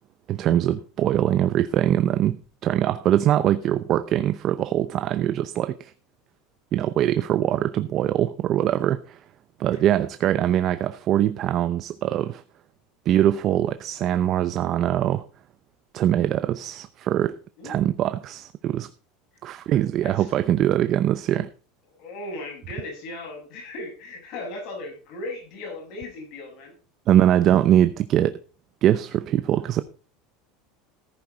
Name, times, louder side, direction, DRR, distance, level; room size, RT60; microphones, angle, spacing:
voice 1, 0.3-5.9 6.7-9.2 9.6-12.4 13.1-15.3 15.9-17.4 17.6-18.9 19.4-21.5 27.1-28.4 28.8-29.8, right 11 dB, 40° right, 12 dB, 0.7 m, -22 dB
voice 2, 22.0-26.7, left 2 dB, 55° left, 1 dB, 7.2 m, -37 dB
14.5 x 9.5 x 4.0 m, 0.37 s
supercardioid pair, 145°, 0 cm